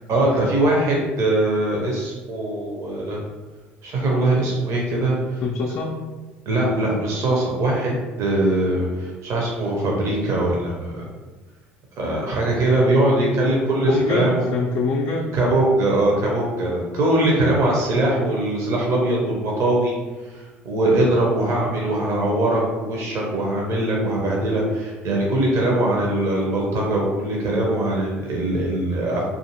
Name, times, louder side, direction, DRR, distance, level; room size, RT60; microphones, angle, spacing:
voice 1, 0.1-3.2 3.8-5.4 6.5-11.0 12.0-14.5 15.3-19.9 20.2-29.3, right 1 dB, 50° right, -2 dB, 0.6 m, -21 dB
voice 2, 5.4-6.0 12.9-13.0 13.8-15.3, left 4 dB, 50° left, 0 dB, 0.3 m, -24 dB
2.5 x 2.4 x 2.8 m, 1.2 s
figure-of-eight pair, 60°, 7 cm